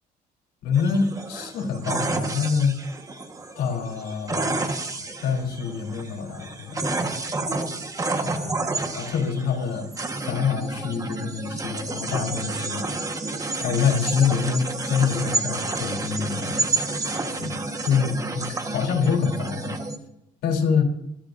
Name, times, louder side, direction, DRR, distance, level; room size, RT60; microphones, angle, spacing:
voice 1, 0.6-2.8 3.5-4.7 5.2-7.5 8.2-9.9 10.2-12.9 13.6-16.7 17.4-19.8 20.4-20.8, left 6 dB, 90° left, 2 dB, 3.6 m, -26 dB
sound 1, 0.7-20.0, right 2 dB, 20° right, 1.5 m, -30 dB
27.0 x 11.5 x 2.7 m, 0.79 s
cardioid pair, 110°, 17 cm